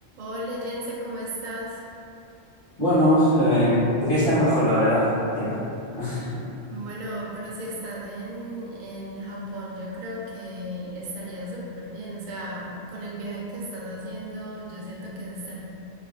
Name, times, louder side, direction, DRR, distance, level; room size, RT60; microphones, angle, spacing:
voice 1, 0.2-1.8 6.7-15.6, equal, 55° right, -5 dB, 0.6 m, -35 dB
voice 2, 2.8-5.1 5.3-5.6 6.0-6.4, equal, 60° left, -15 dB, 1.5 m, -20 dB
3.1 x 2.3 x 2.4 m, 2.7 s
omnidirectional pair, 1.1 m